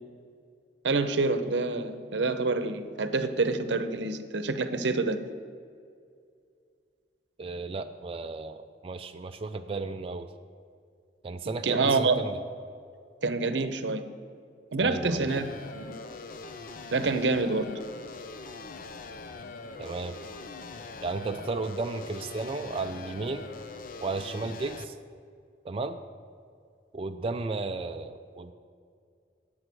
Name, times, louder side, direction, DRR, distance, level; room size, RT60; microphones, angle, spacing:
voice 1, 0.8-5.2 11.6-12.2 13.2-14.0 14.7-15.9 16.9-17.7, right 3 dB, 75° right, 10 dB, 0.7 m, -27 dB
voice 2, 7.4-10.3 11.2-12.4 14.8-15.3 19.8-20.2 21.0-23.5 24.0-25.0 25.6-26.0 26.9-28.5, right 3 dB, 30° right, 6 dB, 0.4 m, -34 dB
sound 1, 15.3-24.8, left 3 dB, 50° left, 0.6 m, -42 dB
9.6 x 7.7 x 6.1 m, 2.3 s
head